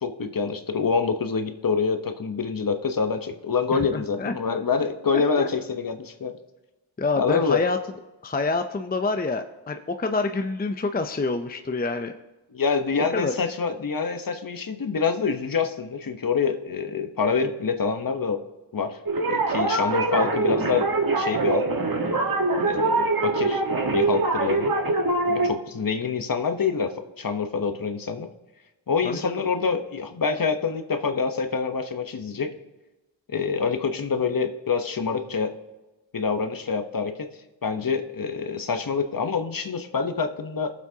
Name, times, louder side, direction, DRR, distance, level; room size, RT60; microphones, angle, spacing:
voice 1, 0.0-6.4 7.2-7.6 12.5-18.4 18.7-19.0 19.3-20.9 21.2-21.7 22.6-23.6 23.9-24.7 25.3-28.3 28.9-32.5 33.3-35.5 36.1-37.3 37.6-40.7, left 5 dB, 45° left, 7 dB, 1.1 m, -26 dB
voice 2, 3.7-4.3 5.4-5.5 7.0-7.8 8.2-12.2 13.1-13.3 20.2-20.6 25.3-25.5 29.0-29.4, left 3 dB, 20° left, 7 dB, 0.6 m, -27 dB
sound 1, 19.1-25.5, right 3 dB, 45° right, 1.6 m, -23 dB
17.5 x 7.4 x 2.8 m, 1.1 s
cardioid pair, 45°, 47 cm